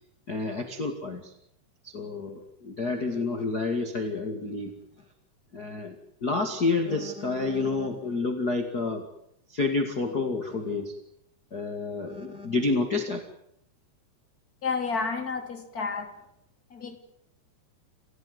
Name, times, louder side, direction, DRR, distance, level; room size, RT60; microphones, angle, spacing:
voice 1, 0.3-1.3 1.8-4.7 5.5-9.0 9.5-10.9 11.5-13.2, left 3 dB, 40° left, 5 dB, 1.4 m, -29 dB
voice 2, 14.6-16.1 16.7-17.0, left 5 dB, 25° left, 5 dB, 2.7 m, -30 dB
28.5 x 16.5 x 9.7 m, 0.75 s
omnidirectional pair, 5.4 m